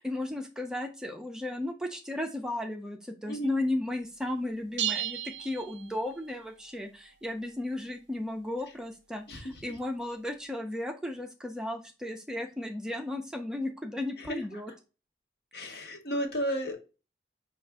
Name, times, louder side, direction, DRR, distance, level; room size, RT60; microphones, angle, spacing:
voice 1, 0.0-14.7, left 1 dB, 5° right, 3 dB, 0.4 m, -35 dB
sound 1, 4.8-6.4, right 11 dB, 70° right, 0.4 m, -34 dB
voice 2, 9.3-9.6 14.2-14.4 15.5-16.8, equal, 60° left, 4 dB, 0.9 m, -33 dB
5.3 x 2.4 x 3.4 m, 0.32 s
head